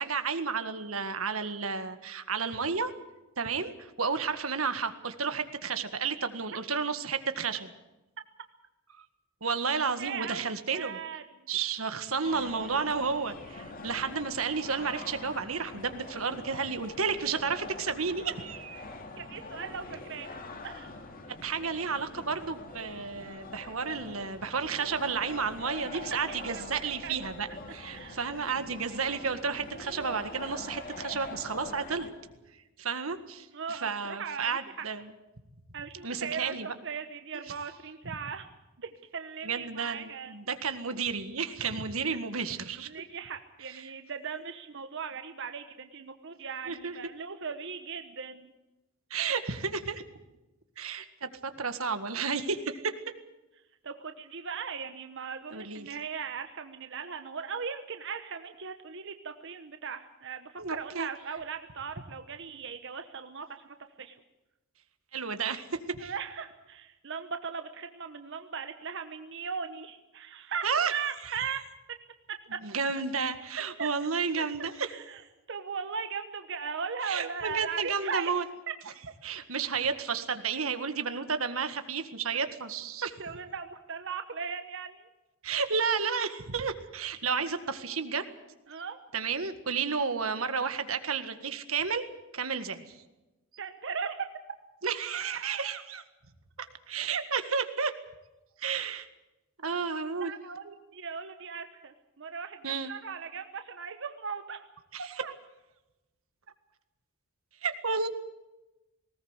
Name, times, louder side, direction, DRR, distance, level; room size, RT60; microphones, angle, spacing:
voice 1, 0.0-2.9 3.4-7.7 9.0-9.1 9.4-11.0 11.5-18.9 21.4-32.1 32.8-35.1 36.0-36.7 39.4-42.9 46.7-47.0 49.1-50.0 50.8-52.9 55.5-56.0 60.6-61.1 65.1-66.1 70.6-70.9 71.2-71.4 72.6-74.9 77.0-78.4 79.2-83.2 85.4-88.3 89.1-92.1 92.3-92.8 94.8-96.0 96.9-97.9 98.6-99.1 99.6-100.3 102.6-102.9 104.9-105.1 107.6-108.1, right 5 dB, 90° right, 9 dB, 1.8 m, -32 dB
voice 2, 10.0-11.5 19.2-20.3 20.6-20.9 25.8-26.0 26.3-27.1 27.9-28.3 33.5-34.9 35.7-38.5 38.8-40.3 42.9-48.5 53.8-64.2 66.0-71.6 72.3-72.6 73.8-73.9 74.4-75.2 75.5-78.3 83.2-85.1 88.7-89.0 93.6-94.2 100.2-104.7 105.2-105.3, right 6 dB, 60° right, 8 dB, 1.1 m, -38 dB
sound 1, 12.2-32.1, left 2 dB, 45° left, 2.5 m, -44 dB
19.5 x 18.5 x 8.2 m, 1.0 s
head